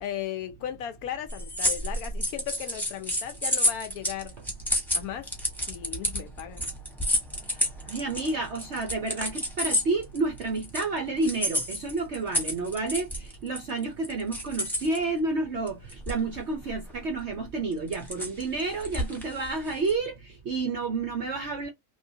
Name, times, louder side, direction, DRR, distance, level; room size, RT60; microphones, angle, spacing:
voice 1, 0.0-4.3 4.9-5.3 5.7-6.6, left 10 dB, 70° left, 0.9 m, -36 dB
sound 1, 1.3-10.8 11.2-15.0 15.7-16.4 16.7-16.9 17.7-19.9, left 1 dB, ahead, 1.0 m, -29 dB
voice 2, 7.9-21.7, right 3 dB, 60° right, 0.7 m, -30 dB
3.2 x 2.7 x 2.7 m
omnidirectional pair, 1.8 m